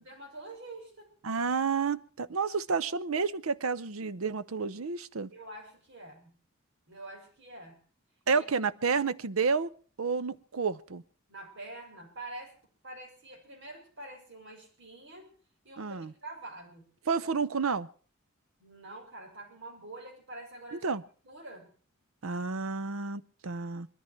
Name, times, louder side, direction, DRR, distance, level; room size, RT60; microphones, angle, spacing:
voice 1, 0.0-1.1 5.3-6.4 6.9-7.8 8.3-8.4 11.3-12.5 12.8-15.3 15.6-16.9 18.6-20.9 21.2-21.7, right 2 dB, 60° right, 2 dB, 6.3 m, -46 dB
voice 2, 1.2-5.3 8.3-9.7 10.0-11.0 15.8-16.1 17.1-17.9 20.7-21.0 22.2-23.9, right 5 dB, 90° right, 16 dB, 0.7 m, -30 dB
21.5 x 13.5 x 4.6 m, 0.42 s
head